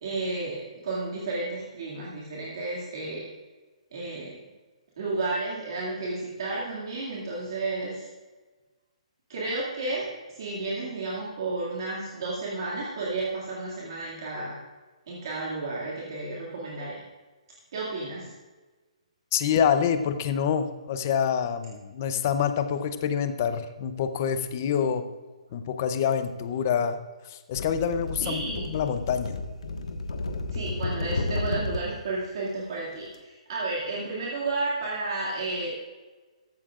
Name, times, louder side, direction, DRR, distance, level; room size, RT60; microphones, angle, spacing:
voice 1, 0.0-3.3 3.9-4.4 5.0-8.1 9.3-14.6 15.1-17.0 17.7-18.3 28.2-28.7 30.5-35.7, right 3 dB, 40° right, -5 dB, 2.2 m, -32 dB
voice 2, 19.3-25.0 25.5-27.0 27.2-29.4, left 8 dB, 25° left, 9 dB, 0.6 m, -26 dB
sound 1, 27.5-32.0 33.0-33.2, left 2 dB, 70° left, 1.4 m, -32 dB
15.0 x 13.5 x 2.5 m, 1.3 s
hypercardioid pair, 180°, 4 cm